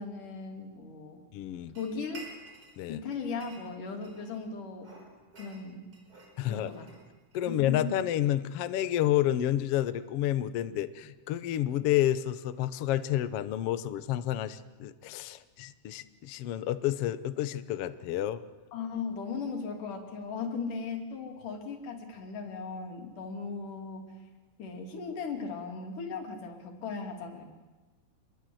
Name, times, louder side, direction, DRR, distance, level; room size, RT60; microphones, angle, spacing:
voice 1, 0.0-1.2 1.8-2.3 2.9-4.9 5.4-5.9 6.4-6.9 7.5-7.9 18.7-24.1 24.6-27.4, left 5 dB, 90° left, 3 dB, 4.3 m, -37 dB
voice 2, 1.3-1.7 2.8-3.0 6.4-6.7 7.3-18.4, left 12 dB, 65° left, 12 dB, 1.6 m, -30 dB
sound 1, 1.7-2.8 3.1-4.4 4.8-7.5, right 2 dB, 25° right, 5.3 m, -51 dB
27.0 x 22.5 x 7.8 m, 1.2 s
omnidirectional pair, 3.6 m